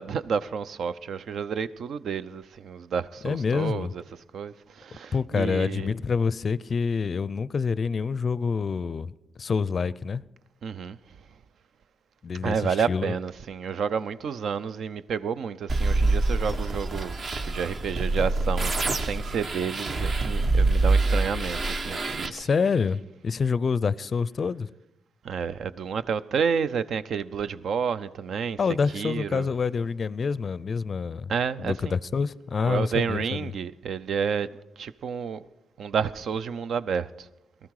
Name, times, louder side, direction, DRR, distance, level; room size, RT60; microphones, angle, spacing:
voice 1, 0.0-3.9 4.3-5.9 10.6-11.0 12.4-22.5 25.2-28.6 28.9-29.5 31.3-31.9 32.6-34.5 34.8-35.5 35.8-37.3, right 6 dB, 70° right, 0.6 m, -30 dB
voice 2, 3.2-3.9 5.1-9.1 9.4-10.2 12.2-13.2 22.3-24.7 28.6-31.3 31.6-33.5, left 5 dB, 45° left, 0.4 m, -27 dB
sound 1, 15.7-22.3, right 2 dB, 45° right, 1.0 m, -25 dB
19.0 x 13.5 x 4.8 m
cardioid pair, 95°, 0 cm